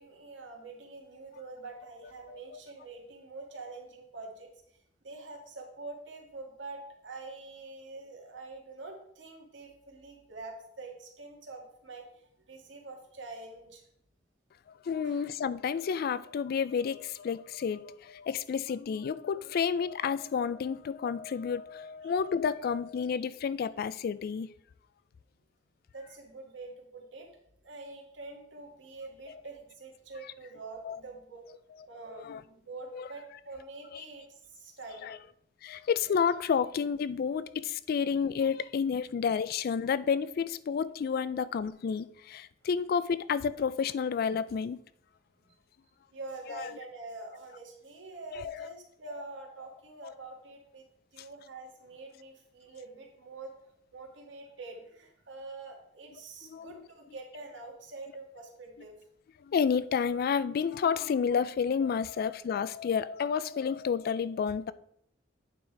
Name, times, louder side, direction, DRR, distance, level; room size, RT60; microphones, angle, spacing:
voice 1, 0.0-4.5 5.0-13.8 15.0-15.3 22.0-22.1 25.9-27.3 27.6-31.4 31.9-35.1 45.4-45.5 46.1-50.8 51.1-53.5 53.9-58.9, right 3 dB, 75° right, 1.7 m, -45 dB
voice 2, 2.3-2.6 14.8-24.5 30.8-31.0 32.2-32.4 32.9-33.1 33.9-34.0 35.0-35.2 35.6-44.8 46.6-46.7 48.4-48.7 50.0-50.1 56.5-56.8 59.4-64.7, left 6 dB, 55° left, 0.3 m, -30 dB
8.7 x 3.9 x 4.5 m
head